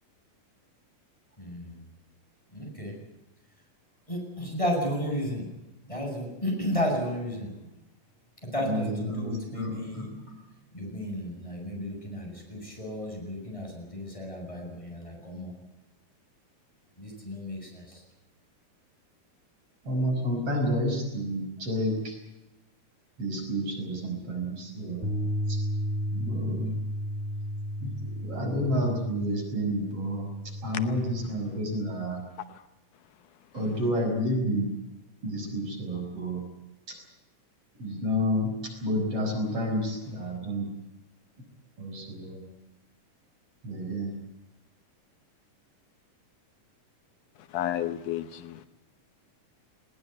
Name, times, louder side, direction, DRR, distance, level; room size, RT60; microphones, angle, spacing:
voice 1, 1.4-1.8 2.5-3.0 4.1-5.5 5.8-7.5 8.4-10.1 10.7-15.5 17.0-18.0, equal, 10° left, 0 dB, 7.9 m, -33 dB
voice 2, 8.6-10.3 19.8-22.2 23.2-25.1 25.5-25.6 26.1-26.7 27.8-30.3 30.6-32.2 33.5-34.7 35.2-36.4 36.9-37.0 37.8-38.5 38.8-40.7 41.8-42.4 43.6-44.1, equal, 45° right, 2 dB, 6.8 m, -30 dB
Bass guitar, 25.0-31.3, equal, 15° right, 2.5 m, -33 dB
voice 3, 47.4-48.7, left 12 dB, 80° left, 11 dB, 2.5 m, -32 dB
21.0 x 18.5 x 9.4 m, 0.96 s
omnidirectional pair, 3.7 m